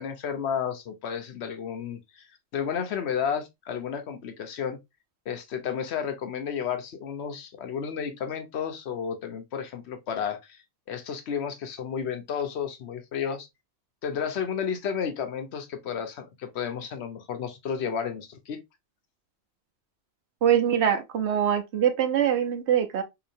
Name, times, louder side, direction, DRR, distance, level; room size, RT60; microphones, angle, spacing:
voice 1, 0.0-2.3 2.5-4.8 5.3-10.6 10.9-13.5 14.0-18.6, left 7 dB, 85° left, 1.0 m, -32 dB
voice 2, 20.4-23.0, right 9 dB, 85° right, 1.1 m, -23 dB
4.1 x 2.9 x 2.6 m
omnidirectional pair, 1.1 m